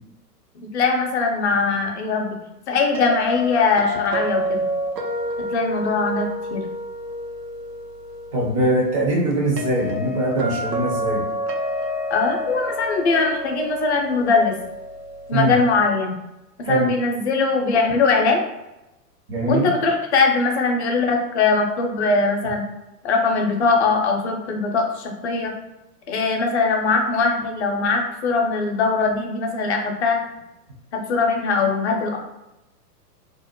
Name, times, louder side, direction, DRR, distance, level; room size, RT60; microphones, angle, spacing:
voice 1, 0.5-2.4 2.7-4.6 5.5-6.6 12.1-14.5 15.3-16.1 16.6-18.4 19.5-22.6 23.0-25.5 26.1-30.2 31.1-32.2, left 4 dB, 45° left, 2 dB, 0.6 m, -21 dB
sound 1, 2.9-15.8, equal, 90° right, 0.6 m, -29 dB
voice 2, 8.3-11.2 15.3-15.5 16.6-16.9 19.3-19.7, right 1 dB, 20° right, -3 dB, 0.5 m, -22 dB
2.5 x 2.0 x 2.9 m, 0.95 s
figure-of-eight pair, 105°, 48 cm